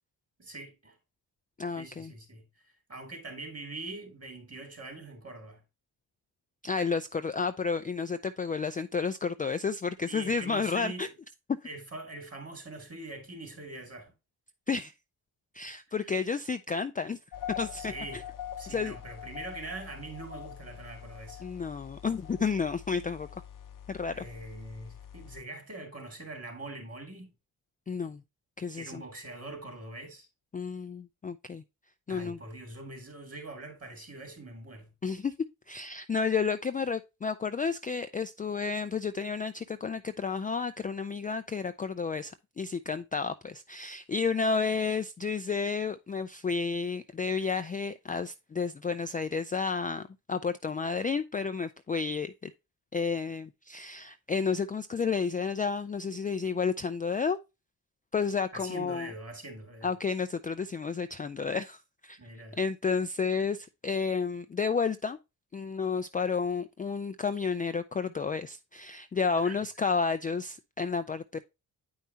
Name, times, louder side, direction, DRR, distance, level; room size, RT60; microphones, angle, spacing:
voice 1, 0.4-1.0 1.7-5.6 10.0-11.1 11.6-14.1 16.0-16.1 17.7-18.2 18.6-21.4 24.1-27.3 28.8-30.3 32.1-34.9 58.5-59.9 62.2-62.6 69.4-69.6, right 2 dB, 35° right, 3.0 m, -43 dB
voice 2, 1.6-2.1 6.6-11.1 14.7-14.9 15.5-17.2 17.6-18.2 18.7-19.0 21.4-23.3 23.9-24.2 27.9-28.2 28.6-29.0 30.5-31.6 32.1-32.4 35.0-35.3 35.7-52.5 52.9-57.4 58.1-59.1 59.8-62.2 62.6-65.2 65.5-71.5, left 5 dB, 20° left, 0.3 m, -31 dB
sound 1, 17.3-25.4, left 10 dB, 55° left, 0.7 m, -44 dB
8.8 x 5.5 x 2.7 m
cardioid pair, 85°, 40 cm